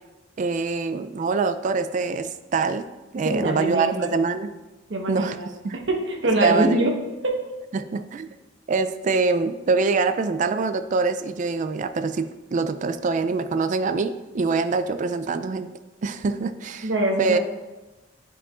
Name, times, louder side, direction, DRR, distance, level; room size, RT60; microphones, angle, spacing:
voice 1, 0.4-2.8 3.1-4.5 5.1-5.4 5.6-5.8 6.4-6.9 7.7-8.3 8.7-15.7 16.0-16.9 17.2-17.4, right 4 dB, 40° right, 10 dB, 0.3 m, -24 dB
voice 2, 3.2-4.1 4.9-5.5 5.9-6.9 7.2-7.3 16.8-17.4, right 1 dB, 75° right, 0 dB, 1.1 m, -23 dB
9.9 x 4.7 x 2.4 m, 1.1 s
head